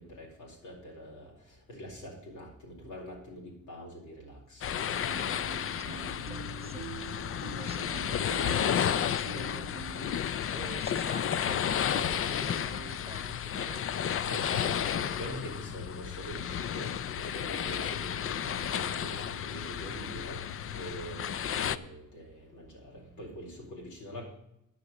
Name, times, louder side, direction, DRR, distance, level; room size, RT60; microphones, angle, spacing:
voice 1, 0.0-1.3 1.7-4.6 13.6-13.8 14.2-20.4 20.7-24.2, equal, 85° left, -1 dB, 4.5 m, -44 dB
sound 1, 4.6-21.8, left 9 dB, 45° left, 0.5 m, -32 dB
sound 2, 5.1-10.2, right 14 dB, 75° right, 0.7 m, -46 dB
voice 2, 5.8-6.9 7.4-9.7 10.5-13.9, right 4 dB, 20° right, 12 dB, 0.4 m, -47 dB
9.7 x 6.8 x 7.1 m, 0.80 s
cardioid pair, 90°, 30 cm